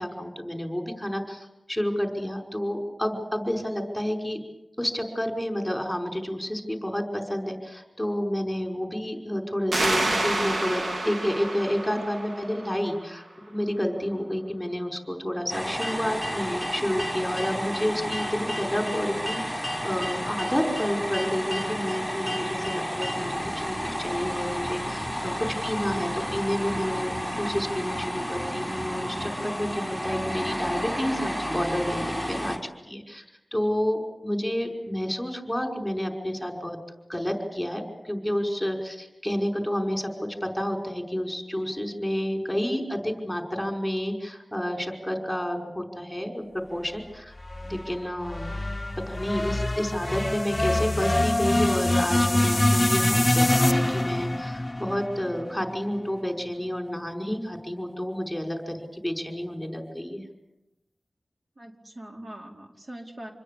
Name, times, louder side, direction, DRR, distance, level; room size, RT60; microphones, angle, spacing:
voice 1, 0.0-4.4 4.8-32.6 32.9-33.2 33.5-36.8 37.1-46.4 46.7-47.4 47.7-48.6 49.1-60.3, equal, 5° left, 4 dB, 5.5 m, -30 dB
sound 1, 9.7-13.1, right 2 dB, 70° right, 3.6 m, -29 dB
sound 2, 15.5-32.6, equal, 15° right, 5.7 m, -31 dB
sound 3, 47.4-55.7, left 1 dB, 25° left, 0.9 m, -25 dB
voice 2, 61.6-63.3, right 1 dB, 50° right, 1 dB, 4.6 m, -42 dB
27.5 x 21.5 x 8.6 m, 0.93 s
wide cardioid pair, 65°, 0 cm